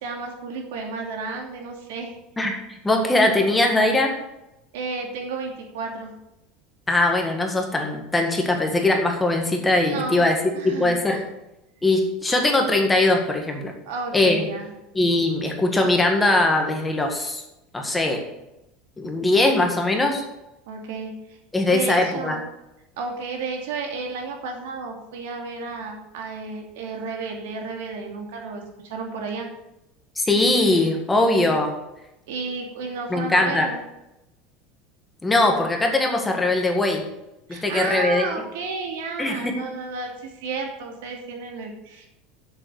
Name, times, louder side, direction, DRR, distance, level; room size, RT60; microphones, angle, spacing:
voice 1, 0.0-2.2 4.7-6.1 9.8-11.2 13.8-14.7 20.7-21.4 21.7-22.4 23.0-29.5 32.3-33.8 37.5-42.1, right 4 dB, 90° right, 2 dB, 2.7 m, -32 dB
voice 2, 2.4-4.1 6.9-10.4 10.6-11.2 11.8-13.7 14.1-14.5 14.9-17.4 17.7-18.2 19.0-20.2 21.5-22.4 30.2-31.7 33.1-33.7 35.2-37.1 37.5-38.3 39.2-39.6, left 2 dB, 10° left, 2 dB, 1.8 m, -21 dB
7.8 x 7.5 x 8.1 m, 0.91 s
supercardioid pair, 150°, 0 cm